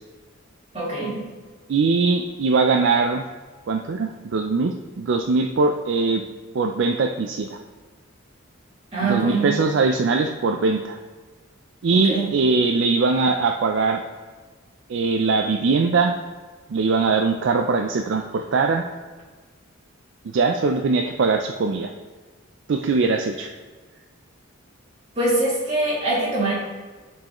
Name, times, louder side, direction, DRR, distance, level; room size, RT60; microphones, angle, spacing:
voice 1, 0.7-1.3 8.9-9.6 11.9-12.3 25.2-26.5, right 2 dB, 30° right, -7 dB, 2.2 m, -23 dB
voice 2, 1.7-3.2 3.7-6.2 6.5-7.6 9.0-11.0 11.8-14.0 14.9-16.2 16.7-18.9 20.3-21.9 22.7-23.5, right 4 dB, 55° right, 4 dB, 0.4 m, -21 dB
10.5 x 4.6 x 3.0 m, 1.4 s
head